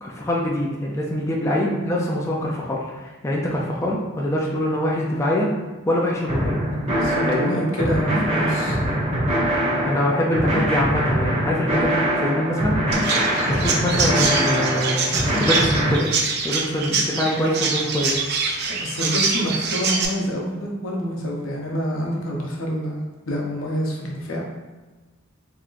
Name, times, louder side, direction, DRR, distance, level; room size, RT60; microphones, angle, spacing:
voice 1, 0.0-5.5 5.9-6.6 7.3-7.6 9.9-12.8 13.4-15.0 15.4-16.1 16.4-18.2, left 1 dB, 15° left, -3 dB, 0.4 m, -24 dB
sound 1, 6.3-15.9, right 1 dB, 30° right, 1.0 m, -23 dB
voice 2, 6.9-8.8 18.6-24.4, equal, 75° left, -1 dB, 0.7 m, -27 dB
Chirp tweet, 12.9-20.1, right 4 dB, 50° right, 0.4 m, -25 dB
3.8 x 2.8 x 2.4 m, 1.2 s
head